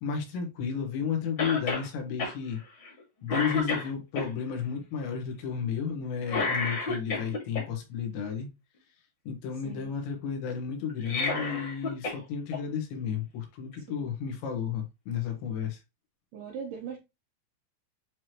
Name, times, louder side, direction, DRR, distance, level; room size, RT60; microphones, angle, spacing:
voice 1, 0.0-2.6 3.2-8.5 9.3-15.8, left 7 dB, 80° left, 3.7 m, -32 dB
Cough, 1.4-1.9 2.2-2.3 2.8-3.0 3.3-4.3 6.3-7.6 10.9-12.2 12.5-12.6 13.7-13.8, left 3 dB, 40° left, 1.7 m, -30 dB
voice 2, 9.5-10.0 13.9-14.2 16.3-17.0, right 7 dB, 75° right, 2.0 m, -40 dB
9.6 x 3.2 x 3.0 m
omnidirectional pair, 5.1 m